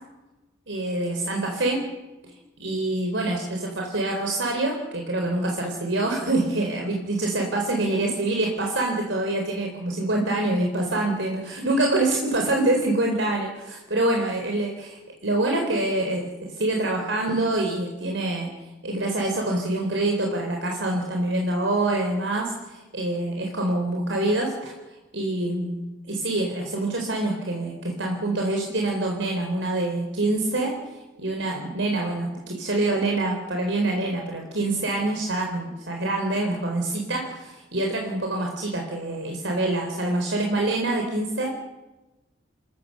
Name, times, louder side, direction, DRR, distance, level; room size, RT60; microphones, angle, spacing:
voice 1, 0.7-1.8 2.6-18.5 18.8-24.7 25.1-25.8 26.1-30.8 31.2-41.5, right 2 dB, 75° right, 1 dB, 4.1 m, -26 dB
28.0 x 16.5 x 6.9 m, 1.1 s
head